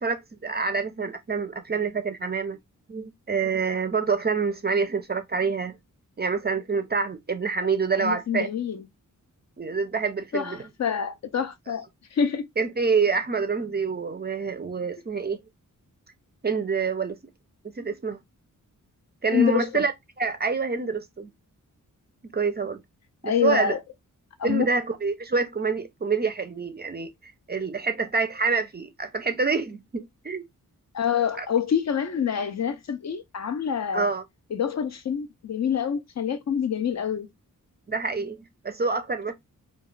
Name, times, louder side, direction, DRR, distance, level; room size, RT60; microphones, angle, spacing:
voice 1, 0.0-2.6 2.9-5.8 6.2-8.5 9.6-10.6 12.6-15.4 16.4-17.2 17.6-18.2 19.2-19.9 20.2-21.3 22.3-22.8 23.2-23.7 24.4-30.4 31.4-31.5 33.9-34.2 37.9-39.3, right 5 dB, 30° right, 0.4 m, -27 dB
voice 2, 8.0-8.8 10.3-11.9 12.1-12.5 19.3-19.8 23.2-23.8 24.4-24.7 30.9-34.1 34.5-37.3, left 8 dB, 55° left, 0.4 m, -26 dB
2.3 x 2.3 x 3.0 m
wide cardioid pair, 125°, 33 cm